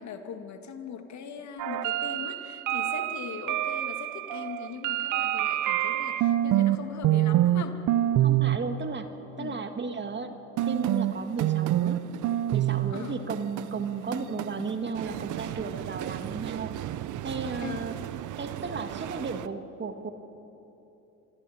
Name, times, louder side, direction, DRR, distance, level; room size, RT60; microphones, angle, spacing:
voice 1, 0.0-7.8 9.3-9.6 12.9-13.2 17.6-17.8, left 6 dB, 50° left, 6 dB, 2.1 m, -40 dB
sound 1, 1.6-6.8 7.0-7.6 7.9-8.6 10.6-19.5, right 13 dB, 55° right, 0.8 m, -28 dB
voice 2, 8.2-9.1 9.4-10.4 10.7-12.0 12.5-16.7 17.2-18.0 18.4-20.1, right 4 dB, 30° right, 7 dB, 1.8 m, -34 dB
26.5 x 23.5 x 4.3 m, 3.0 s
hypercardioid pair, 65°, 36 cm